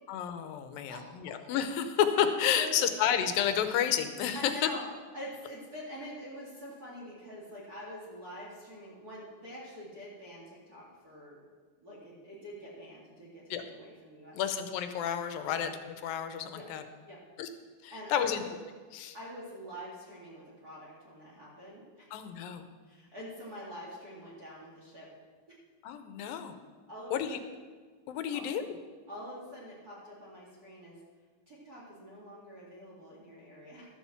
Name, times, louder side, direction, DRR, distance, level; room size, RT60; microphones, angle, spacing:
voice 1, 0.1-4.7 13.5-13.6 14.3-15.7 16.0-16.8 17.4-17.5 17.8-18.4 18.9-19.2 22.1-22.7 25.8-26.5 27.1-27.4 28.1-28.6, left 9 dB, 90° left, 8 dB, 2.6 m, -30 dB
voice 2, 2.6-2.9 4.3-4.8 5.1-11.4 11.8-14.4 15.5-15.6 16.5-16.7 17.1-17.2 17.9-18.4 19.1-22.1 22.8-25.1 26.9-27.4 28.3-28.4 29.1-31.0 31.5-33.9, equal, 30° right, -5 dB, 2.4 m, -45 dB
12.5 x 7.3 x 7.1 m, 1.5 s
omnidirectional pair, 4.0 m